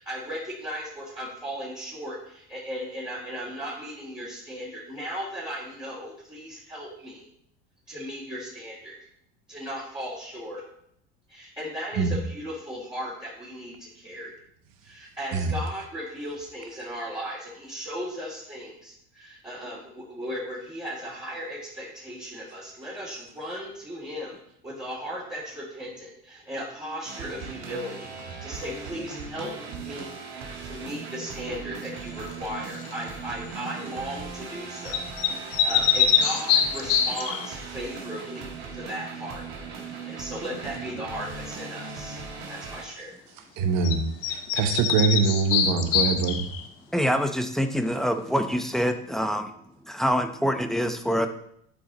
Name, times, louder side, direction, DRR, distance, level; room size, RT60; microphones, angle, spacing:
voice 1, 0.0-7.3 7.9-9.1 9.5-10.7 11.3-14.3 14.8-30.1 30.4-35.0 35.3-39.4 39.7-42.2 42.5-43.2, equal, 15° right, -9 dB, 3.3 m, -37 dB
sound 1, 27.0-42.9, right 5 dB, 75° right, 1.7 m, -38 dB
sound 2, 32.7-33.0 34.8-37.5 43.8-43.9 44.2-46.7, left 8 dB, 70° left, 1.0 m, -24 dB
voice 2, 43.6-44.0 44.3-46.4, right 5 dB, 60° right, 8 dB, 1.2 m, -24 dB
voice 3, 46.9-49.5 49.9-51.3, equal, ahead, 8 dB, 0.8 m, -25 dB
11.5 x 4.8 x 4.0 m, 0.71 s
hypercardioid pair, 85°, 31 cm